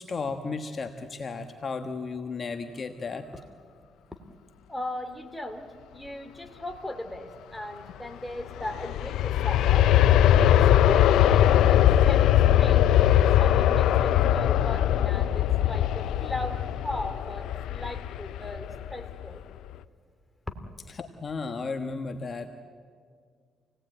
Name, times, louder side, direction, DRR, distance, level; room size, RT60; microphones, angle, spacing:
voice 1, 0.0-3.3 20.9-22.5, left 4 dB, 40° left, 6 dB, 1.3 m, -34 dB
voice 2, 4.7-5.7 5.9-9.9 10.4-19.4, left 1 dB, 5° left, 5 dB, 2.7 m, -38 dB
Aircraft, 8.4-19.2 19.7-19.8, left 11 dB, 85° left, 0.6 m, -21 dB
27.5 x 18.5 x 9.0 m, 2.1 s
cardioid pair, 90°, 0 cm